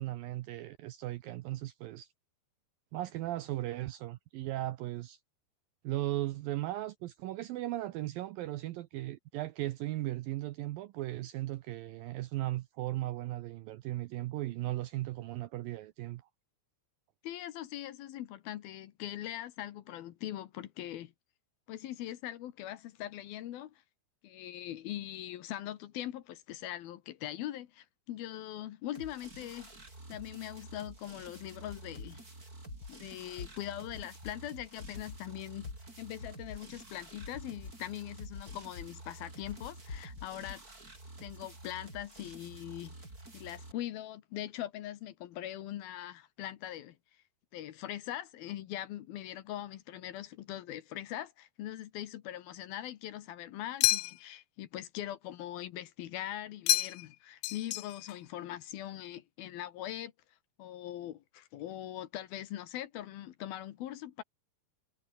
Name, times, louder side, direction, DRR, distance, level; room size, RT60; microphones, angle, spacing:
voice 1, 0.0-2.1 2.9-5.2 5.8-16.2, right 16 dB, 80° right, 2.1 m, -37 dB
voice 2, 17.2-21.1 21.7-23.8 24.2-29.7 30.1-32.2 32.9-35.7 36.0-40.6 41.2-42.9 43.3-47.0 47.5-60.1 60.6-64.2, left 13 dB, 70° left, 2.8 m, -41 dB
sound 1, 29.0-43.7, right 2 dB, 20° right, 6.4 m, -50 dB
sound 2, 31.7-32.1 32.7-32.9 33.4-33.5 33.9-34.3 34.8-35.2 35.6-35.7 36.2-36.6 37.2-37.7 38.2-38.9 39.5-40.6, left 6 dB, 35° left, 2.2 m, -43 dB
sound 3, 53.8-54.4 56.7-57.2 57.4-58.2, left 18 dB, 90° left, 1.9 m, -30 dB
omnidirectional pair, 4.9 m